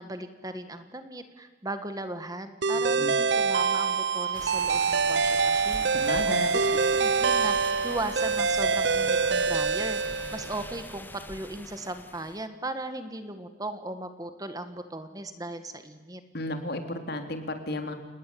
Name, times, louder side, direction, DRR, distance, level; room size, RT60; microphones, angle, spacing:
voice 1, 0.0-6.6 6.9-10.0 10.3-16.2, right 2 dB, 20° right, 9 dB, 1.7 m, -37 dB
sound 1, 2.6-10.7, right 5 dB, 65° right, 0.8 m, -25 dB
sound 2, 4.1-8.9, left 4 dB, 30° left, 2.6 m, -50 dB
sound 3, 4.3-12.5, left 2 dB, 10° left, 1.0 m, -43 dB
voice 2, 5.9-6.5 16.3-17.9, left 1 dB, 55° left, 6 dB, 3.3 m, -33 dB
30.0 x 19.5 x 8.7 m, 1.3 s
head